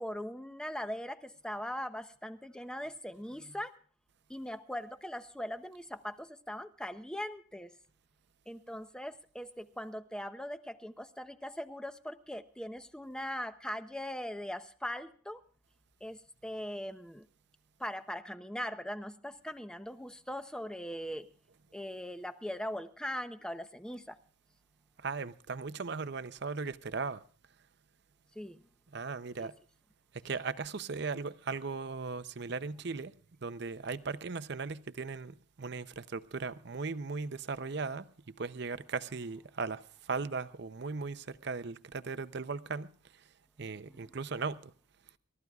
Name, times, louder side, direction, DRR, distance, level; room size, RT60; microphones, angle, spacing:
voice 1, 0.0-3.7 4.3-7.8 8.5-15.4 16.0-17.3 17.8-21.3 21.7-24.2 28.3-28.6 29.4-29.5 43.9-44.1, equal, 5° left, 0.7 m, -40 dB
voice 2, 25.0-27.2 28.9-29.5 30.1-33.1 33.4-43.3 43.6-44.7, right 4 dB, 55° right, 0.6 m, -38 dB
28.0 x 13.5 x 2.4 m
head